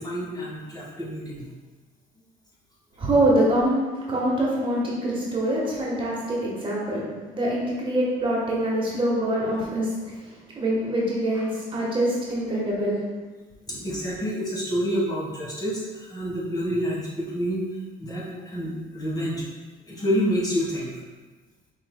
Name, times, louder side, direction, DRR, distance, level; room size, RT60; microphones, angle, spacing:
voice 1, 0.0-1.5 13.7-17.6 18.0-19.4 19.9-20.9, equal, 25° left, -6 dB, 1.4 m, -28 dB
voice 2, 3.0-10.3 10.5-13.1 13.7-13.8, right 1 dB, 30° right, -5 dB, 1.2 m, -25 dB
5.5 x 3.7 x 2.2 m, 1.3 s
cardioid pair, 110°, 17 cm